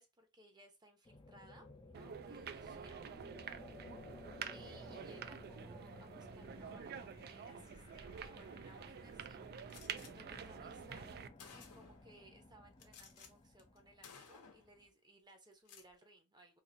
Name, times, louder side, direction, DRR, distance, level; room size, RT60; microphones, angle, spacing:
voice 1, 0.0-3.1 4.5-9.4 10.1-11.1 11.5-16.6, right 1 dB, 20° right, 0.8 m, -62 dB
sound 1, 1.0-14.9, left 2 dB, 20° left, 0.5 m, -57 dB
sound 2, 1.9-11.3, right 7 dB, 45° right, 0.3 m, -48 dB
Gunshot gunfire, 9.7-10.1 10.9-11.0 11.4-12.1 12.8-13.3 13.6-13.8 14.0-14.7 15.5-15.9, left 6 dB, 90° left, 0.9 m, -56 dB
2.9 x 2.6 x 3.7 m
head